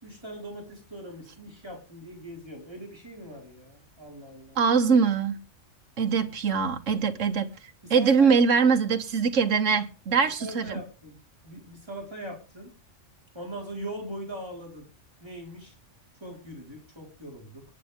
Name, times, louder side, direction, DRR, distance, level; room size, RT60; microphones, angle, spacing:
voice 1, 0.0-4.6 7.8-8.4 10.4-11.2 11.4-12.7 13.3-14.9 15.2-15.7 16.2-17.6, right 1 dB, 20° right, 5.1 m, -41 dB
voice 2, 4.6-5.4 6.0-7.5 7.9-10.8, right 5 dB, 75° right, 1.6 m, -22 dB
22.0 x 9.0 x 3.6 m
omnidirectional pair, 1.3 m